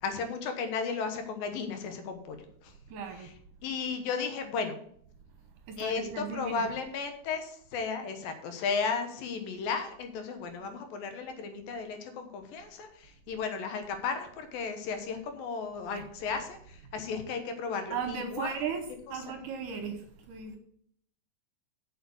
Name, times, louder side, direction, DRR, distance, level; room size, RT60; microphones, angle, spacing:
voice 1, 0.0-2.8 3.2-3.3 3.6-4.8 5.8-18.6 19.1-19.2, left 5 dB, 70° left, 2.8 m, -34 dB
voice 2, 2.9-3.4 5.7-6.7 10.6-10.7 15.9-16.0 17.9-20.6, right 6 dB, 70° right, 2.2 m, -37 dB
7.6 x 6.9 x 7.8 m
omnidirectional pair, 4.5 m